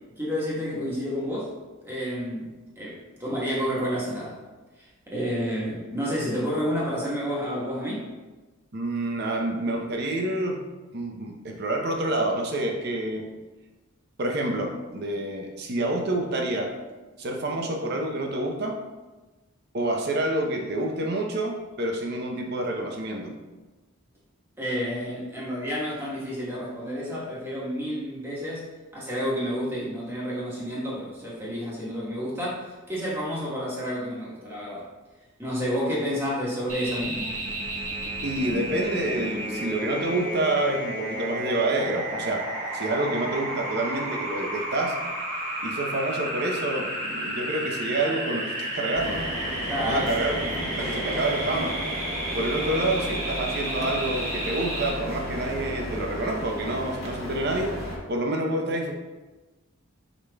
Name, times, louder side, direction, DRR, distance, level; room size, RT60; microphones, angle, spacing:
voice 1, 0.2-1.5 1.8-4.4 5.1-8.1 24.6-34.9 35.4-37.4 49.7-50.1, equal, 10° right, -6 dB, 1.1 m, -30 dB
voice 2, 8.7-13.3 14.2-16.7 17.2-18.8 19.7-23.3 38.2-42.4 42.7-45.0 45.6-49.3 49.8-51.8 52.3-57.7 58.1-58.9, right 2 dB, 50° right, 2 dB, 0.6 m, -28 dB
sound 1, 36.7-54.9, right 1 dB, 35° right, 1.1 m, -32 dB
sound 2, 48.9-58.0, equal, 30° left, 1.3 m, -34 dB
5.1 x 4.7 x 2.2 m, 1.2 s
head